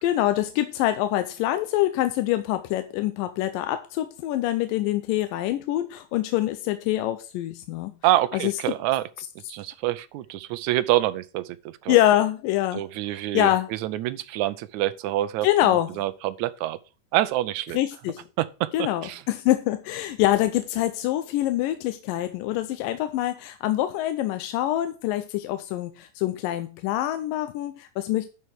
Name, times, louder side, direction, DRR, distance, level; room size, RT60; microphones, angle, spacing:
voice 1, 0.0-7.9 8.4-8.5 11.9-12.8 13.1-13.7 15.4-15.9 17.7-18.2 18.7-28.3, left 14 dB, 90° left, 2.4 m, -25 dB
voice 2, 8.0-9.1 9.5-12.0 12.7-16.8 17.1-17.8 18.4-19.2, right 14 dB, 75° right, 1.8 m, -26 dB
11.0 x 4.7 x 6.1 m
omnidirectional pair, 3.8 m